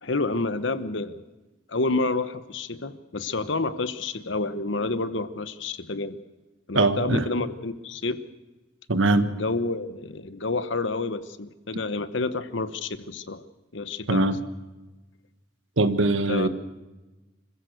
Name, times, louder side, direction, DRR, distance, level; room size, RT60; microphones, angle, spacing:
voice 1, 0.0-1.2 1.7-6.2 6.7-8.2 9.3-13.5 13.7-14.3 16.3-16.5, left 3 dB, 70° left, 12 dB, 1.1 m, -29 dB
voice 2, 6.7-7.3 8.9-9.3 14.1-14.4 15.8-16.5, right 2 dB, 80° right, 10 dB, 1.4 m, -21 dB
26.0 x 15.5 x 6.6 m, 1.2 s
head